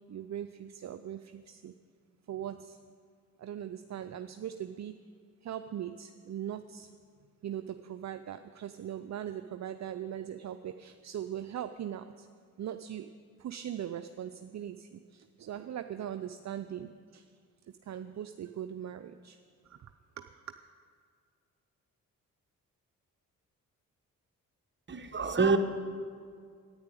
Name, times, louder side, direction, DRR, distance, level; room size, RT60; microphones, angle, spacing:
voice 1, 0.1-1.7 2.3-2.8 3.4-5.0 5.4-6.9 7.4-12.3 12.6-13.1 13.4-17.3 17.8-19.4 19.7-19.9 20.2-20.3, right 10 dB, 50° right, 9 dB, 0.6 m, -40 dB
voice 2, 24.9-25.6, right 4 dB, 30° right, 6 dB, 1.2 m, -26 dB
10.0 x 9.8 x 8.5 m, 2.1 s
supercardioid pair, 50°, 35 cm